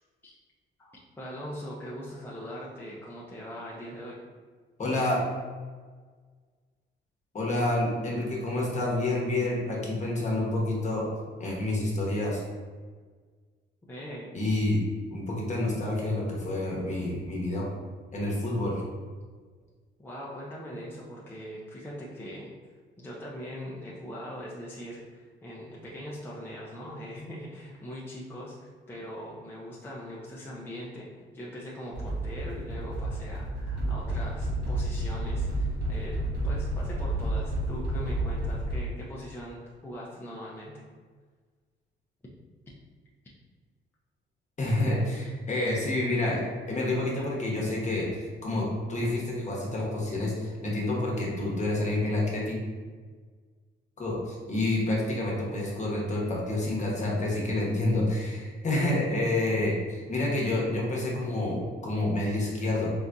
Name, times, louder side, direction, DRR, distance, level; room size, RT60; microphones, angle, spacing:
voice 1, 0.8-4.2 13.8-14.3 20.0-22.5 23.0-31.1 31.3-36.1 36.4-40.9, equal, 10° left, -5 dB, 0.5 m, -41 dB
voice 2, 4.8-5.2 7.3-11.1 11.4-12.4 14.3-14.8 15.1-17.6 18.1-18.8 44.6-46.4 46.7-52.6 54.0-62.9, left 1 dB, 35° left, -3 dB, 1.0 m, -28 dB
sound 1, 31.9-38.8, right 1 dB, 65° right, 0.9 m, -30 dB
3.9 x 2.5 x 2.3 m, 1.5 s
cardioid pair, 90°, 20 cm